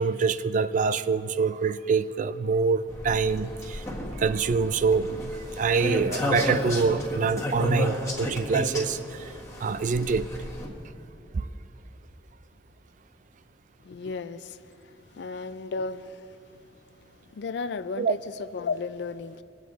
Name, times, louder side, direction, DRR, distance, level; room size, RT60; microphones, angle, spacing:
voice 1, 0.0-3.8 4.2-5.2 5.6-9.3 9.6-10.3 11.3-11.5 18.0-18.1, right 5 dB, 45° right, 14 dB, 0.3 m, -25 dB
sound 1, 2.9-10.7, left 1 dB, 20° left, 1.6 m, -32 dB
voice 2, 13.8-14.6 15.1-16.3 17.3-19.4, left 4 dB, 70° left, 14 dB, 0.4 m, -34 dB
20.5 x 8.0 x 4.0 m, 2.5 s
head